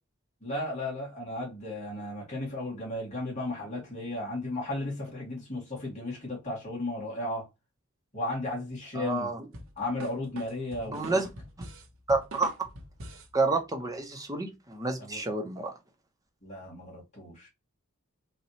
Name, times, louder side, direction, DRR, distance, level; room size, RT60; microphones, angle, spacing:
voice 1, 0.4-7.5 8.1-9.3 9.8-11.2 15.0-15.2 16.4-17.5, left 1 dB, 30° left, 2.1 m, -35 dB
voice 2, 8.9-9.4 10.9-11.3 12.1-12.5 13.3-15.7, right 3 dB, 15° right, 0.7 m, -29 dB
sound 1, 9.5-13.3, right 2 dB, 65° right, 0.9 m, -44 dB
4.1 x 2.2 x 2.8 m
head